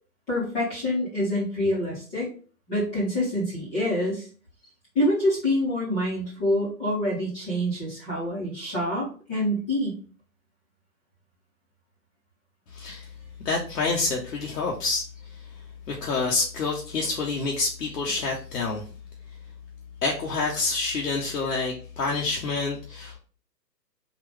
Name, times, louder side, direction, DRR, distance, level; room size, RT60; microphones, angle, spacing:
voice 1, 0.3-2.3 2.7-4.3 4.9-10.0, left 1 dB, 15° left, -8 dB, 0.8 m, -26 dB
voice 2, 12.7-13.1 13.4-15.0 15.9-18.8 20.0-23.2, left 3 dB, 70° left, -2 dB, 0.9 m, -27 dB
3.8 x 2.4 x 3.4 m, 0.40 s
figure-of-eight pair, 140°, 50 cm